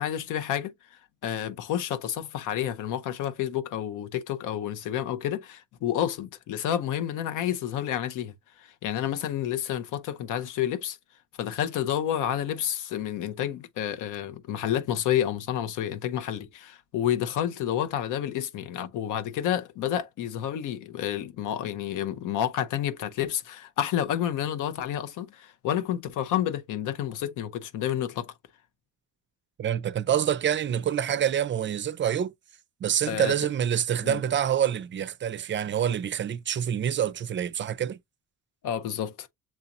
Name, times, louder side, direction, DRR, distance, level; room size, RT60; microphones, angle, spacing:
voice 1, 0.0-11.0 11.4-28.3 33.1-33.3 34.0-34.2 38.6-39.3, left 10 dB, 85° left, 0.7 m, -30 dB
voice 2, 29.6-32.3 32.8-38.0, right 9 dB, 40° right, 0.4 m, -26 dB
7.2 x 2.9 x 2.5 m
cardioid pair, 90°, 30 cm